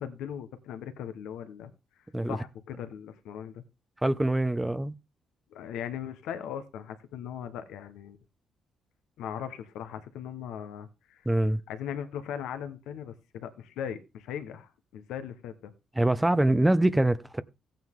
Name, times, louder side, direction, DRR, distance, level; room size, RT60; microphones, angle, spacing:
voice 1, 0.0-1.7 2.2-3.6 5.5-8.2 9.2-11.2 11.7-15.7, left 9 dB, 90° left, 1.2 m, -39 dB
voice 2, 4.0-4.9 11.3-11.6 16.0-17.4, right 1 dB, 10° right, 0.6 m, -24 dB
14.5 x 9.1 x 3.7 m
cardioid pair, 90°, 0 cm